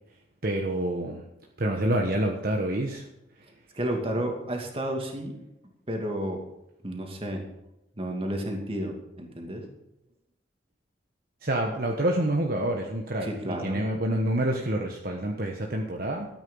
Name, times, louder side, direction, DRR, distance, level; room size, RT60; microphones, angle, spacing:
voice 1, 0.4-1.2 1.6-3.1 11.4-16.3, right 1 dB, 55° right, 1 dB, 1.3 m, -27 dB
voice 2, 3.7-5.3 5.9-6.4 6.8-7.4 8.0-9.7 13.2-13.8, right 1 dB, 30° right, 2 dB, 2.4 m, -31 dB
13.5 x 9.2 x 5.5 m, 0.88 s
head